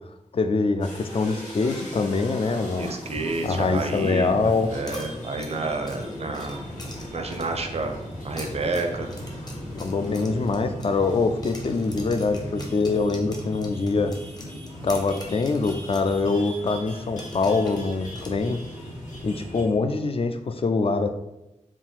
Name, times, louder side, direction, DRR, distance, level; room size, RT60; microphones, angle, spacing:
voice 1, 0.3-2.9 3.4-4.7 9.7-14.1 14.8-18.6 19.2-21.1, left 4 dB, 50° left, 8 dB, 0.3 m, -24 dB
sound 1, 0.8-19.8, equal, 80° left, 1.3 m, -38 dB
voice 2, 2.8-6.7 7.1-7.9 8.2-9.1, right 3 dB, 55° right, 5 dB, 0.5 m, -30 dB
sound 2, 4.9-7.7 8.2-11.2 11.4-16.1 16.4-16.5 17.2-18.8, left 1 dB, 30° left, 0.8 m, -44 dB
3.7 x 2.4 x 4.4 m, 0.93 s
wide cardioid pair, 100°, 13 cm